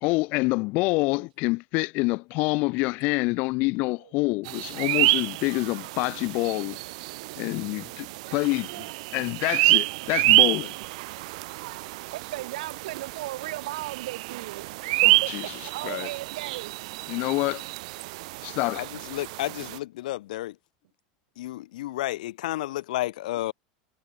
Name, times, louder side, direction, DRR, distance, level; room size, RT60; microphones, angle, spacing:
voice 1, 0.0-6.8 7.4-8.9 9.1-10.7 15.0-15.4 15.8-16.1 17.1-17.6 18.4-18.8, left 25 dB, 40° left, 1.0 m, -27 dB
sound 1, 4.4-19.8, right 22 dB, 60° right, 0.4 m, -28 dB
voice 2, 12.1-16.8, right 16 dB, 80° right, 2.4 m, -36 dB
voice 3, 18.8-20.5 21.4-23.5, left 16 dB, 80° left, 1.5 m, -31 dB
supercardioid pair, 175°, 4 cm